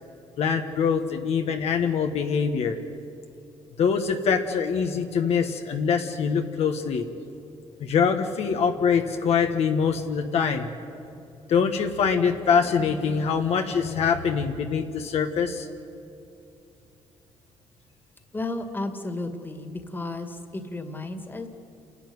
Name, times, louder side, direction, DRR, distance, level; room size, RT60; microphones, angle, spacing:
voice 1, 0.4-2.8 3.8-7.0 7.8-10.7 11.5-15.7, left 6 dB, 70° left, 5 dB, 1.4 m, -24 dB
voice 2, 18.3-21.5, left 2 dB, 20° left, 7 dB, 2.1 m, -33 dB
29.0 x 11.5 x 9.6 m, 2.7 s
cardioid pair, 105°, 11 cm